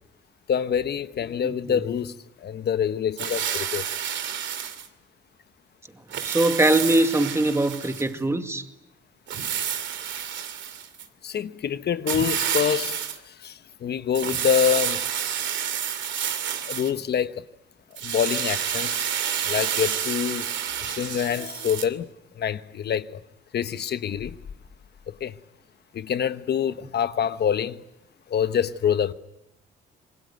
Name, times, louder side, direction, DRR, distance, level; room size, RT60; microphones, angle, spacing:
voice 1, 0.5-2.1 2.4-3.8 11.2-13.0 13.2-15.0 16.7-17.4 18.0-19.1 19.5-20.5 20.8-22.1 22.4-23.2 23.5-24.4 25.1-25.3 25.9-27.8 28.3-29.1, left 8 dB, 55° left, 1.1 m, -26 dB
voice 2, 1.4-1.8 6.2-8.6, right 1 dB, 15° right, 2.1 m, -22 dB
sound 1, 3.2-4.9 6.1-8.1 9.3-11.0 12.1-13.2 14.1-16.9 18.0-21.9, right 9 dB, 70° right, 2.5 m, -29 dB
26.5 x 21.5 x 9.2 m
cardioid pair, 90°, 20 cm